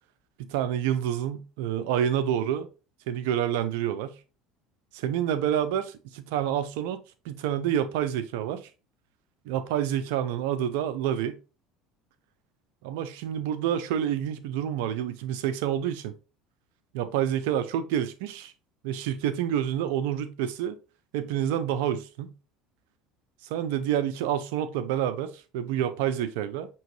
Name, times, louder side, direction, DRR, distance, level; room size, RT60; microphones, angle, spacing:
voice 1, 0.4-2.7 3.1-4.1 4.9-8.7 9.5-11.4 12.8-16.1 16.9-18.5 18.8-20.8 21.1-22.3 23.5-26.7, right 10 dB, 80° right, 0.6 m, -28 dB
5.8 x 3.0 x 3.0 m
supercardioid pair, 95°, 0 cm